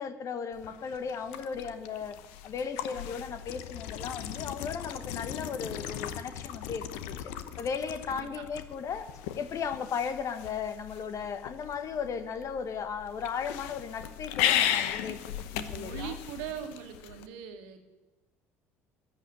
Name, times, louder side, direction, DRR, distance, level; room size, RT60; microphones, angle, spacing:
voice 1, 0.0-2.2 2.4-7.3 7.6-9.1 9.3-15.2 15.5-16.1, left 6 dB, 45° left, 11 dB, 1.3 m, -36 dB
sound 1, 0.5-17.3, left 11 dB, 70° left, 0.9 m, -36 dB
voice 2, 8.1-8.5 15.6-17.8, right 9 dB, 75° right, 6 dB, 1.7 m, -41 dB
13.5 x 8.3 x 9.8 m, 1.1 s
hypercardioid pair, 60°, 7 cm